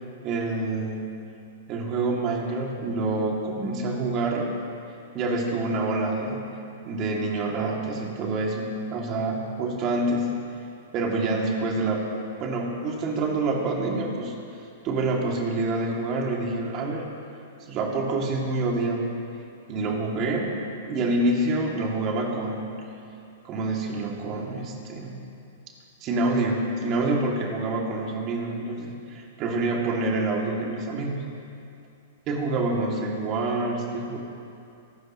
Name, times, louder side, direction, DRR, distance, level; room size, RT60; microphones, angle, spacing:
voice 1, 0.2-1.0 1.7-4.5 5.1-6.4 6.9-10.3 10.9-12.1 12.4-14.3 14.8-17.0 17.7-19.2 19.7-20.6 20.8-22.7 23.4-25.2 26.0-31.2 32.3-34.2, right 2 dB, 35° right, -1 dB, 2.6 m, -27 dB
24.0 x 12.0 x 3.1 m, 2.6 s
hypercardioid pair, 125°, 0 cm